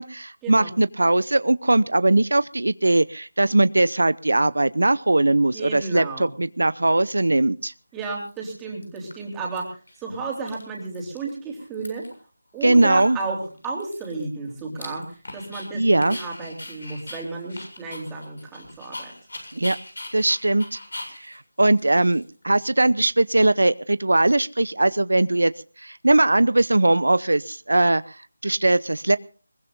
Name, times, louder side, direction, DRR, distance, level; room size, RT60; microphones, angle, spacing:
voice 1, 0.0-7.7 12.6-13.2 15.7-16.2 19.5-19.8 20.1-20.8 21.1-25.5 25.8-29.2, right 2 dB, 85° right, 16 dB, 0.7 m, -20 dB
voice 2, 5.5-6.3 7.9-12.0 12.5-15.0 15.3-19.1, right 3 dB, 5° right, -2 dB, 3.6 m, -33 dB
Dog, 7.3-7.4 8.0-8.5 8.8-9.6 9.9-10.0 10.2-11.3 11.6-12.2 12.6-12.7 13.0-15.7 16.0-22.6, left 1 dB, 80° left, 7.5 m, -40 dB
21.5 x 20.5 x 2.6 m, 0.38 s
figure-of-eight pair, 170°, 0 cm